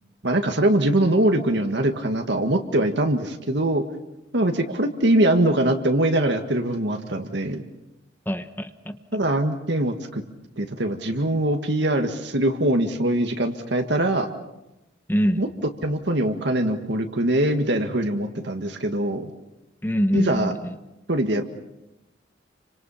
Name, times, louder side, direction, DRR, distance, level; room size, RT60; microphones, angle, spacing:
voice 1, 0.2-3.8 4.3-7.6 9.1-10.2 10.6-14.3 15.4-15.5 15.8-19.3 20.1-20.5 21.1-21.4, right 1 dB, 65° right, 5 dB, 1.8 m, -22 dB
voice 2, 8.3-9.0 15.1-15.4 19.8-20.8, equal, 10° left, 10 dB, 1.0 m, -23 dB
28.5 x 25.0 x 5.7 m, 0.92 s
head